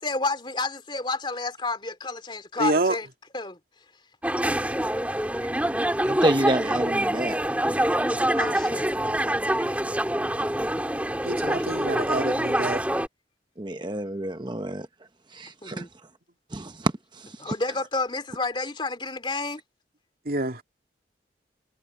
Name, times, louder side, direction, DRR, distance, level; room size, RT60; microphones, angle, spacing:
voice 1, 0.0-3.1 3.3-3.6 8.4-8.8 15.6-15.9 17.4-19.6, left 3 dB, 25° left, 2.8 m, -30 dB
voice 2, 2.6-3.0 11.3-12.8 20.3-20.6, right 2 dB, 55° right, 2.5 m, -27 dB
sound 1, 4.2-13.1, right 1 dB, 10° right, 3.5 m, -25 dB
voice 3, 6.0-7.4 13.6-14.9 15.3-15.8 16.5-16.9 17.5-17.6, right 1 dB, 25° right, 0.9 m, -27 dB
head